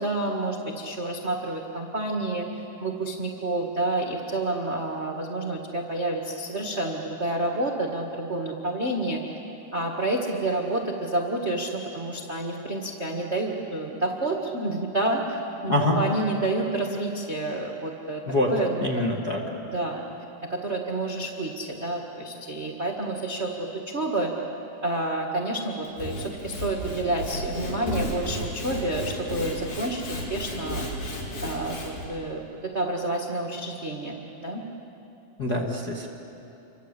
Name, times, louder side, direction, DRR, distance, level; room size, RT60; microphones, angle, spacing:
voice 1, 0.0-2.5 2.8-9.2 9.7-18.9 19.6-20.0 20.5-24.3 24.8-30.8 31.4-34.6, right 2 dB, 35° right, 0 dB, 1.0 m, -29 dB
voice 2, 18.8-19.4 35.4-36.1, left 1 dB, 40° left, -1 dB, 1.5 m, -25 dB
Sawing / Wood, 25.8-32.1, equal, 85° left, 5.8 m, -33 dB
28.5 x 24.5 x 8.3 m, 2.9 s
omnidirectional pair, 4.6 m